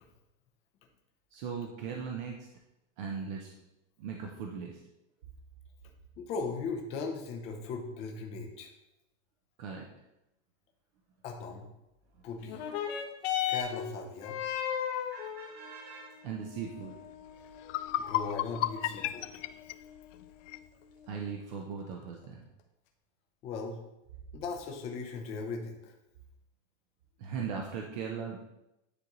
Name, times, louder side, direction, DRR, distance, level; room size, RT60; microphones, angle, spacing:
voice 1, 1.3-2.5 3.0-3.5 4.0-4.8 9.6-9.8 15.1-17.0 21.1-22.4 27.2-28.4, right 6 dB, 40° right, 1 dB, 0.6 m, -39 dB
voice 2, 6.2-8.7 11.2-11.7 12.2-12.6 13.5-14.4 18.0-19.3 23.4-23.8 24.3-25.9, left 4 dB, 20° left, 1 dB, 0.6 m, -38 dB
sound 1, 12.4-21.4 22.2-22.3, left 9 dB, 60° left, 1.0 m, -38 dB
sound 2, 17.1-17.2 17.6-20.7, left 13 dB, 85° left, 0.5 m, -34 dB
9.7 x 3.9 x 3.0 m, 0.91 s
supercardioid pair, 180°, 36 cm